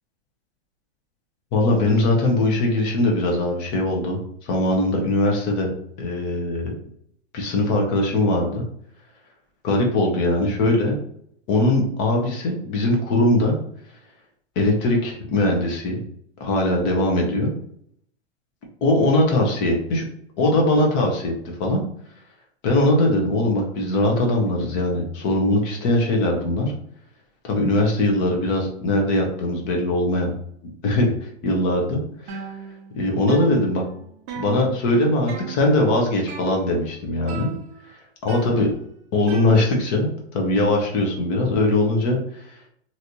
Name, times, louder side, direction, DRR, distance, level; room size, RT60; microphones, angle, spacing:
voice 1, 1.5-5.7 6.0-6.7 7.3-8.6 9.6-11.0 11.5-13.5 14.6-16.0 16.4-17.5 18.8-20.0 20.4-21.3 21.6-21.8 22.6-26.7 27.4-30.3 30.8-31.1 31.4-32.0 32.9-33.8 34.3-37.5 38.2-38.7 39.1-42.2, left 1 dB, 35° left, 1 dB, 1.0 m, -21 dB
sound 1, 32.3-33.0 33.3-35.0 35.3-35.8 36.3-36.9 37.3-37.9 38.3-40.0, right 5 dB, 20° right, 0.5 m, -37 dB
3.1 x 2.7 x 2.9 m, 0.68 s
hypercardioid pair, 150°, 32 cm